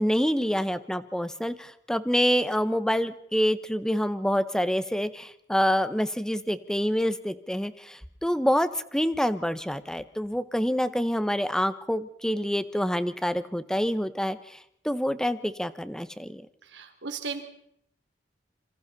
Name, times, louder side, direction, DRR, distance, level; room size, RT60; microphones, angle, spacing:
voice 1, 0.0-14.6 14.8-16.4, equal, 5° left, 13 dB, 0.9 m, -27 dB
voice 2, 16.6-17.4, right 5 dB, 75° right, 5 dB, 3.0 m, -36 dB
26.5 x 25.5 x 4.1 m, 0.72 s
head